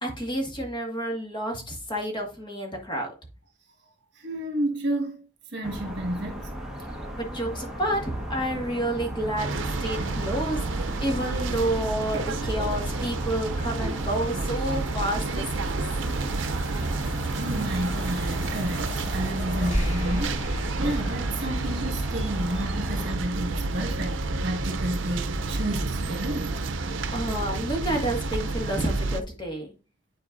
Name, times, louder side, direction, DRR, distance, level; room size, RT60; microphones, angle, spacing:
voice 1, 0.0-3.1 7.2-15.7 27.1-29.7, right 1 dB, 25° left, 1.7 m, -30 dB
voice 2, 4.1-6.5 17.3-27.1, right 1 dB, 60° right, 1.7 m, -31 dB
sound 1, 5.6-23.1, equal, 5° right, 1.3 m, -37 dB
sound 2, 9.4-29.2, right 3 dB, 80° right, 0.6 m, -30 dB
sound 3, 13.3-21.9, equal, 40° left, 3.0 m, -37 dB
10.5 x 4.3 x 2.6 m
head